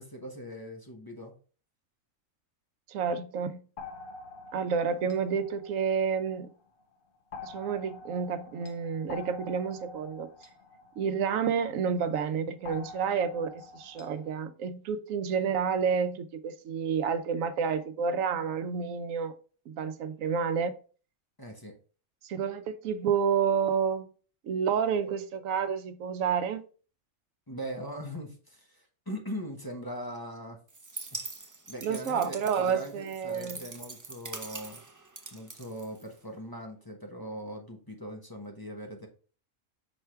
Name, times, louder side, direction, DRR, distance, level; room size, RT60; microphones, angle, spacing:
voice 1, 0.0-1.4 21.4-21.8 27.5-30.6 31.1-31.2 31.7-34.8 35.3-39.1, equal, 20° left, 0.9 m, -40 dB
voice 2, 2.9-3.7 4.5-6.5 7.4-10.3 11.0-19.4 19.7-20.8 22.2-24.1 24.4-26.6 31.8-33.6, right 6 dB, 80° right, 1.0 m, -29 dB
sound 1, 3.8-6.5 7.3-11.9 12.6-14.4, left 3 dB, 50° left, 0.8 m, -46 dB
sound 2, 30.7-36.4, right 3 dB, 30° right, 0.3 m, -44 dB
6.2 x 3.4 x 4.4 m
omnidirectional pair, 1.4 m